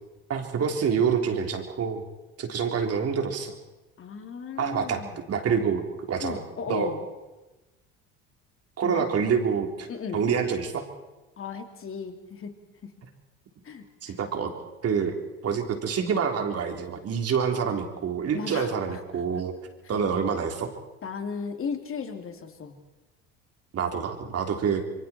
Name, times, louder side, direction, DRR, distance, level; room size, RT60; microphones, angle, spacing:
voice 1, 0.3-2.0 2.4-3.5 4.6-5.0 5.3-6.4 6.7-6.9 8.8-9.9 10.1-10.9 14.0-14.5 14.8-15.2 15.4-19.5 19.9-20.7 23.7-24.8, right 6 dB, 50° right, 3 dB, 3.7 m, -27 dB
voice 2, 4.0-5.3 6.2-7.0 8.8-9.1 9.9-10.2 11.4-12.5 12.8-12.9 13.6-14.2 18.3-19.2 21.0-22.7, left 6 dB, 40° left, 5 dB, 3.0 m, -36 dB
26.5 x 23.5 x 4.5 m, 1.1 s
hypercardioid pair, 75°, 32 cm